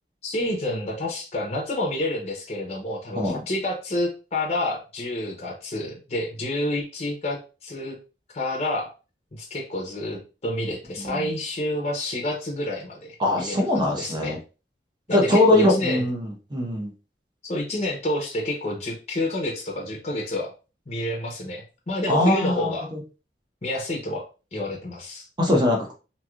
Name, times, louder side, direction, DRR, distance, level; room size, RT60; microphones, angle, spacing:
voice 1, 0.2-8.0 8.3-8.9 9.3-14.4 15.1-16.0 17.4-20.5 20.9-22.9 23.6-24.3 24.5-25.3, left 1 dB, 35° left, -1 dB, 0.7 m, -29 dB
voice 2, 13.2-14.4 15.1-16.9 22.1-23.0 25.4-25.9, left 1 dB, 25° right, 0 dB, 0.9 m, -22 dB
3.0 x 2.7 x 2.4 m, 0.32 s
head